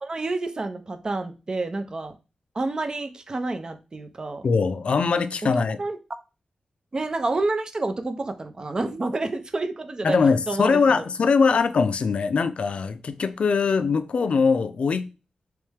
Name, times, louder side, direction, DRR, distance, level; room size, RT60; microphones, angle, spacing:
voice 1, 0.0-2.2 2.5-4.5 5.8-6.0 6.9-10.2 10.5-10.8 11.5-11.6, right 2 dB, 35° right, 0.5 m, -29 dB
voice 2, 4.4-5.8 10.0-15.1, left 5 dB, 65° left, 0.4 m, -22 dB
3.3 x 3.1 x 3.3 m
wide cardioid pair, 90°, 2 cm